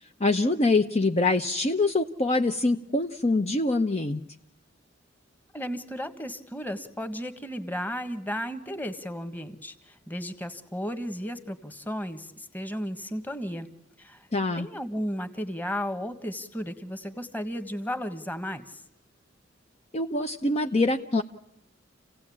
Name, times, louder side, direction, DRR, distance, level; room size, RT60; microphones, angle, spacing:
voice 1, 0.2-4.2 14.3-14.7 19.9-21.2, left 2 dB, 35° left, 5 dB, 0.8 m, -24 dB
voice 2, 5.5-13.7 14.0-14.3 14.5-18.8, equal, 10° left, 9 dB, 1.5 m, -34 dB
28.5 x 16.5 x 8.6 m, 0.87 s
head